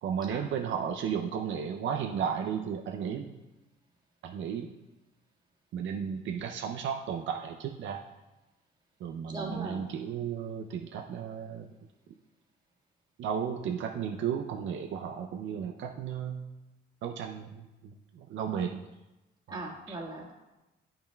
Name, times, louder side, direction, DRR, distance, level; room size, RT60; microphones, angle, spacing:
voice 1, 0.0-3.3 4.2-4.7 5.7-8.0 9.0-11.7 13.2-16.5 17.0-18.8 19.5-20.0, right 7 dB, 70° right, 3 dB, 0.5 m, -34 dB
voice 2, 9.3-9.8 19.5-20.3, right 2 dB, 20° right, -3 dB, 1.6 m, -38 dB
8.6 x 5.5 x 2.3 m, 1.0 s
cardioid pair, 90°, 20 cm